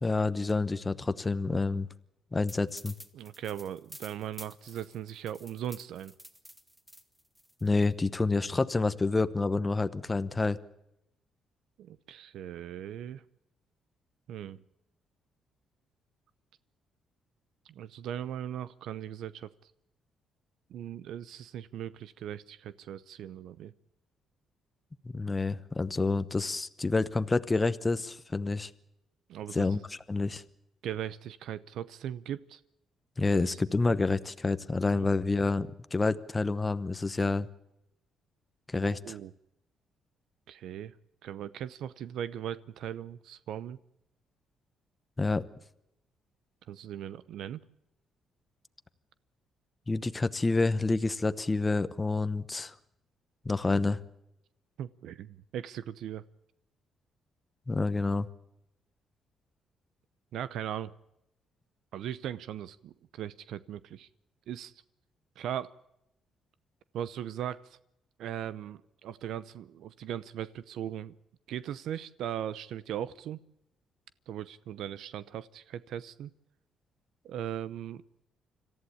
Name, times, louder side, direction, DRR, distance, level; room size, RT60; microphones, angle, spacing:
voice 1, 0.0-1.9 2.3-2.9 7.6-10.6 25.0-28.7 29.5-29.8 30.1-30.4 33.2-37.5 38.7-39.0 45.2-45.5 49.9-52.7 53.4-54.0 57.7-58.3, left 3 dB, 20° left, 13 dB, 0.9 m, -28 dB
sound 1, 2.5-7.9, equal, 5° right, 1.7 m, -50 dB
voice 2, 3.1-6.1 11.8-13.2 14.3-14.6 17.6-19.7 20.7-23.7 29.3-29.7 30.8-32.6 33.3-33.6 34.9-35.1 38.8-39.3 40.5-40.9 41.2-43.8 46.7-47.6 54.8-56.2 60.3-60.9 61.9-64.1 64.5-64.7 65.4-65.7 66.9-67.8 68.2-71.1 71.5-73.4 74.3-76.3 77.2-78.0, right 10 dB, 75° right, 17 dB, 0.7 m, -39 dB
26.5 x 14.5 x 8.6 m, 0.82 s
cardioid pair, 130°, 0 cm